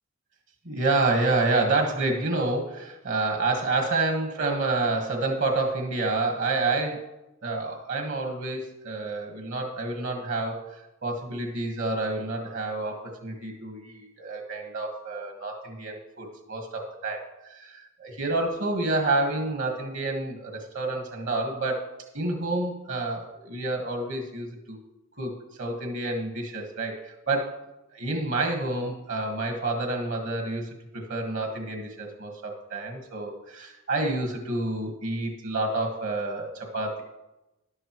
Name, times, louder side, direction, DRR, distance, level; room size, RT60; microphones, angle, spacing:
voice 1, 0.6-7.1 7.4-10.6 11.0-17.2 17.5-21.8 22.1-24.8 25.2-25.3 25.6-27.5 27.9-37.0, right 2 dB, 60° right, 3 dB, 1.5 m, -28 dB
13.0 x 11.0 x 3.1 m, 0.97 s
head